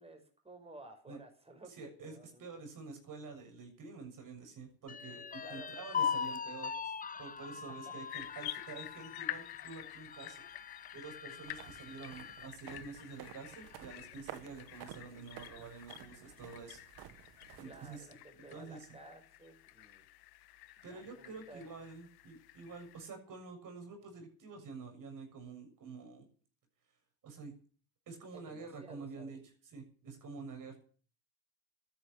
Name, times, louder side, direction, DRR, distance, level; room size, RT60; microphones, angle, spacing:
voice 1, 0.0-2.5 5.4-6.1 7.5-7.9 17.5-20.1 20.9-21.7 28.3-29.4, right 2 dB, 15° right, 4 dB, 5.9 m, -55 dB
voice 2, 1.8-6.9 7.2-10.5 10.9-16.8 17.6-18.1 18.3-18.8 20.8-26.3 27.2-27.5 28.1-29.4 29.6-30.8, right 4 dB, 55° right, 5 dB, 7.2 m, -48 dB
sound 1, 4.9-12.5 13.0-13.1 13.5-14.1, left 7 dB, 20° left, 0.8 m, -41 dB
sound 2, 8.1-23.1, left 15 dB, 75° left, 1.2 m, -49 dB
sound 3, 11.4-18.0, right 12 dB, 85° right, 1.6 m, -53 dB
13.0 x 11.0 x 9.3 m, 0.43 s
cardioid pair, 100°, 38 cm